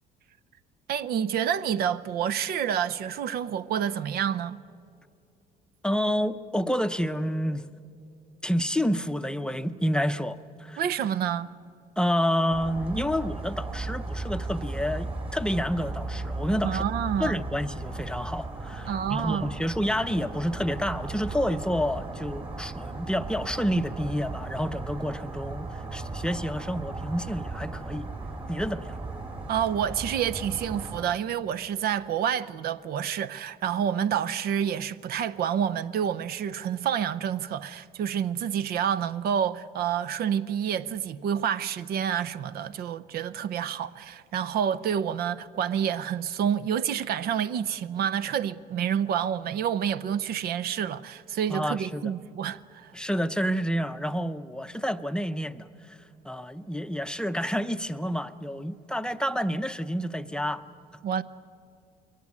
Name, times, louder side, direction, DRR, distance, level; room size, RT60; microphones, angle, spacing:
voice 1, 0.9-4.6 10.8-11.5 16.6-17.4 18.9-19.5 29.5-52.9 61.0-61.2, right 9 dB, 65° right, 0.6 m, -28 dB
voice 2, 5.8-7.7 8.4-10.8 12.0-16.8 17.2-28.1 28.5-29.0 51.5-52.1 52.9-60.6, equal, 5° left, 0.6 m, -29 dB
sound 1, 12.5-31.0, right 3 dB, 35° right, 3.2 m, -36 dB
22.5 x 18.0 x 9.6 m
cardioid pair, 110°, 17 cm